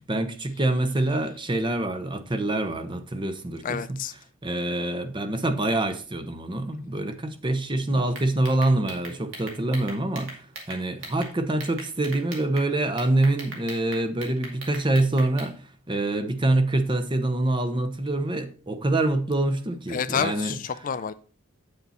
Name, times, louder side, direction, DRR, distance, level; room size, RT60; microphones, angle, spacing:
voice 1, 0.0-4.0 4.4-20.6, right 2 dB, 25° right, 0.7 m, -26 dB
voice 2, 3.6-4.1 7.9-8.0 19.9-21.1, left 7 dB, 40° left, 0.4 m, -29 dB
sound 1, 8.1-11.3 11.6-12.7 13.0-15.5, right 2 dB, 65° right, 2.4 m, -39 dB
8.3 x 6.6 x 4.2 m
head